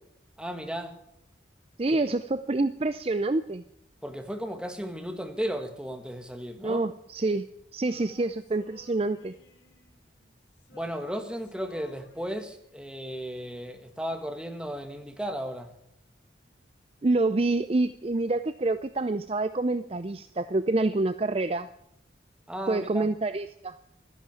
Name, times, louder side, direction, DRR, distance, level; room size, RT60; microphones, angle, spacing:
voice 1, 0.4-1.0 2.0-2.1 4.0-6.8 10.7-15.7 22.5-23.1, equal, 5° right, 4 dB, 1.8 m, -35 dB
voice 2, 1.8-3.6 6.6-7.5 7.7-9.3 17.0-21.7 22.7-23.8, right 2 dB, 30° right, 12 dB, 0.5 m, -27 dB
Male singing, 7.9-10.3 10.6-12.7, left 2 dB, 80° left, 2.3 m, -56 dB
13.0 x 10.5 x 8.8 m, 0.78 s
head